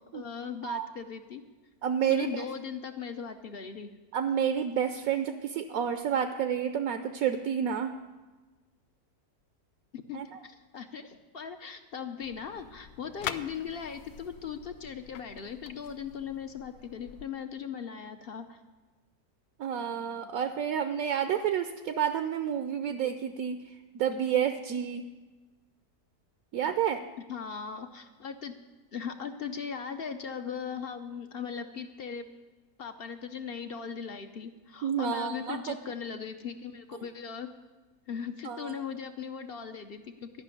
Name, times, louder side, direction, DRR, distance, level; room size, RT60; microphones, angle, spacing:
voice 1, 0.0-1.4 2.1-3.9 9.9-18.6 27.3-28.5 28.9-32.3 32.8-37.5 38.1-40.3, left 7 dB, 55° left, 7 dB, 0.7 m, -39 dB
voice 2, 1.8-2.4 4.1-7.9 10.1-10.4 19.6-25.0 26.5-27.0 34.8-35.8 38.4-38.8, right 8 dB, 75° right, 8 dB, 1.1 m, -30 dB
sound 1, 12.2-17.3, left 10 dB, 90° left, 1.1 m, -44 dB
13.0 x 5.9 x 9.0 m, 1.3 s
omnidirectional pair, 1.6 m